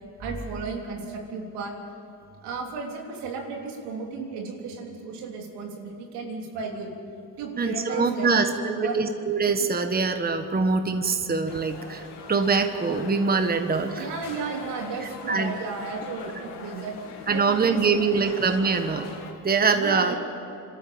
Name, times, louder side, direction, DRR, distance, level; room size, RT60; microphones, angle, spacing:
voice 1, 0.2-1.7 2.4-6.9 7.4-9.0 14.0-16.9 17.3-18.3 19.8-20.2, right 4 dB, 90° right, 1 dB, 3.4 m, -34 dB
voice 2, 7.6-12.0 12.3-14.0 15.3-15.5 17.3-19.1 19.4-20.1, right 4 dB, 25° right, 7 dB, 1.3 m, -24 dB
sound 1, 11.5-19.3, left 5 dB, 85° left, 2.5 m, -42 dB
26.0 x 13.0 x 7.7 m, 2.8 s
cardioid pair, 95°, 39 cm